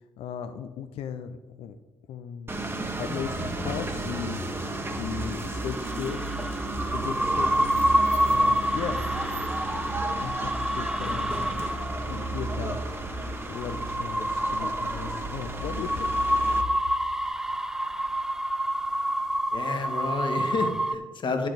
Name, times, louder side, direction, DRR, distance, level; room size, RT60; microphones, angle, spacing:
voice 1, 0.2-1.8 2.1-2.6 3.0-4.4 4.9-6.2 6.9-9.1 10.0-11.5 12.1-12.8 13.5-16.3, left 8 dB, 65° left, 8 dB, 0.5 m, -37 dB
sound 1, 2.5-16.6, right 2 dB, 20° right, 1.4 m, -33 dB
sound 2, 4.6-20.9, equal, 5° right, 0.7 m, -28 dB
voice 2, 19.5-21.5, left 3 dB, 45° left, 5 dB, 1.6 m, -30 dB
10.0 x 6.1 x 5.1 m, 1.2 s
hypercardioid pair, 50°, 11 cm